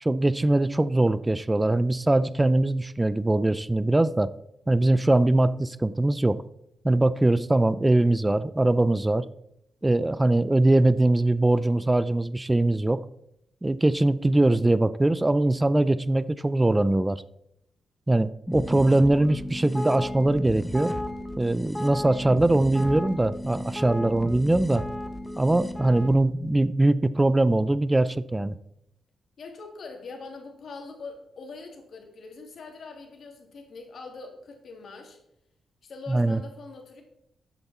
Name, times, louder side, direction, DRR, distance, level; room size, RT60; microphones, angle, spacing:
voice 1, 0.0-4.3 4.7-6.4 6.8-9.2 9.8-13.0 13.6-17.2 18.1-20.9 21.4-24.8 25.4-28.5 36.1-36.4, right 2 dB, 15° right, 16 dB, 0.4 m, -22 dB
sound 1, 18.5-26.1, left 1 dB, ahead, 1.1 m, -34 dB
voice 2, 29.4-35.2 35.8-37.0, left 3 dB, 55° left, 2 dB, 2.7 m, -42 dB
13.0 x 8.0 x 4.3 m, 0.80 s
cardioid pair, 120°, 0 cm